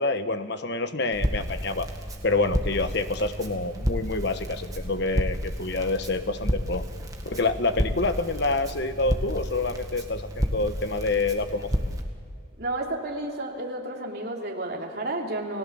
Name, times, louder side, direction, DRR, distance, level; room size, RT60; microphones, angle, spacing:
voice 1, 0.0-1.9 2.2-6.8 7.2-11.7, left 3 dB, 55° left, 9 dB, 1.2 m, -27 dB
Crackle, 1.1-12.0, equal, 15° right, 1.8 m, -31 dB
voice 2, 12.6-15.6, right 2 dB, 50° right, 0 dB, 3.1 m, -31 dB
30.0 x 17.5 x 7.0 m, 2.3 s
head